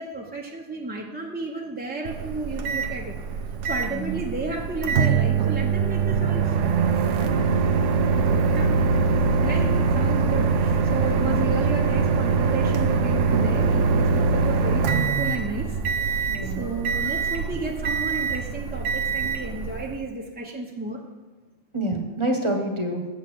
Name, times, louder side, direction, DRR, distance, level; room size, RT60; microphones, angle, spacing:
voice 1, 0.0-3.2 3.6-6.6 8.5-8.7 9.4-21.0, right 2 dB, 10° right, -1 dB, 0.7 m, -33 dB
Microwave oven, 2.0-20.0, right 5 dB, 85° right, 1.0 m, -23 dB
voice 2, 16.3-16.6 21.7-23.1, right 1 dB, 25° right, 3 dB, 1.1 m, -28 dB
8.2 x 7.3 x 6.1 m, 1.3 s
omnidirectional pair, 1.2 m